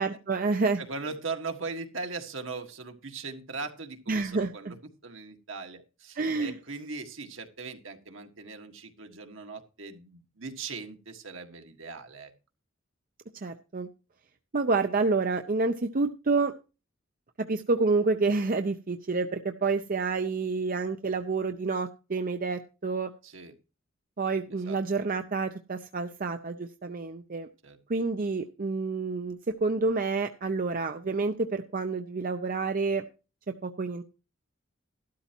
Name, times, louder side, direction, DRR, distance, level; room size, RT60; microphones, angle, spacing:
voice 1, 0.0-0.8 4.1-4.7 6.2-6.5 13.4-13.9 14.5-16.5 17.4-23.1 24.2-27.5 27.9-33.1 33.5-34.0, right 3 dB, 45° right, 7 dB, 0.6 m, -28 dB
voice 2, 0.8-4.8 5.0-12.3 23.2-23.5 24.7-24.8 27.6-27.8, right 4 dB, 70° right, 5 dB, 1.7 m, -39 dB
13.0 x 12.5 x 3.0 m, 0.32 s
head